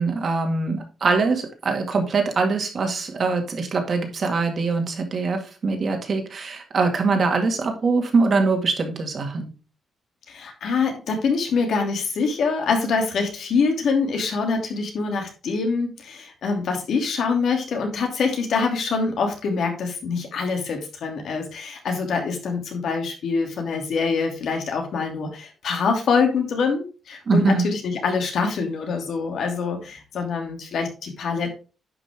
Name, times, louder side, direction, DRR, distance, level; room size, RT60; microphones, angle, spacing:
voice 1, 0.0-9.5 27.3-27.6, right 4 dB, 45° right, 5 dB, 2.2 m, -23 dB
voice 2, 10.3-31.5, left 4 dB, 65° left, 3 dB, 2.8 m, -25 dB
10.5 x 5.9 x 3.6 m, 0.33 s
wide cardioid pair, 145°, 0 cm